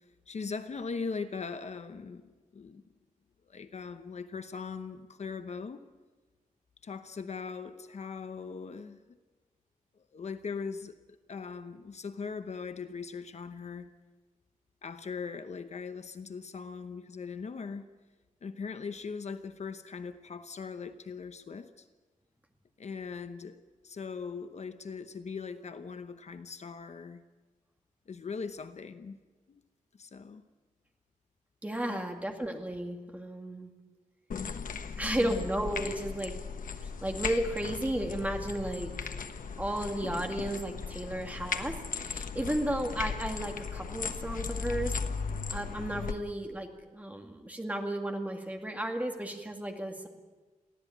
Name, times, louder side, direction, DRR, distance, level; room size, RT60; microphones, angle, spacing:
voice 1, 0.3-2.8 3.5-5.8 6.8-9.0 10.0-13.9 14.8-17.9 18.4-21.9 22.8-27.2 28.1-29.2 29.5-29.6 29.9-30.4 31.8-32.1 35.0-35.4, left 5 dB, 55° left, 0.9 m, -40 dB
voice 2, 31.6-33.7 35.0-36.4 36.8-39.2 39.6-44.9 45.5-50.1, right 1 dB, 10° right, 2.2 m, -34 dB
sound 1, 34.3-46.1, left 5 dB, 75° left, 1.2 m, -37 dB
23.5 x 15.5 x 9.2 m
wide cardioid pair, 170°, 14 cm